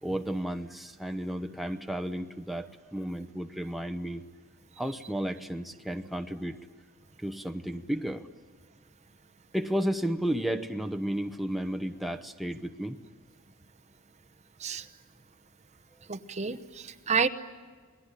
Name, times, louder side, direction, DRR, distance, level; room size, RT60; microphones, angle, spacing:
voice 1, 0.0-4.2 4.8-6.6 7.2-8.3 9.5-13.0, right 1 dB, ahead, 6 dB, 0.9 m, -33 dB
voice 2, 16.1-17.3, right 5 dB, 35° right, 9 dB, 0.9 m, -29 dB
28.5 x 20.0 x 9.9 m, 1.5 s
head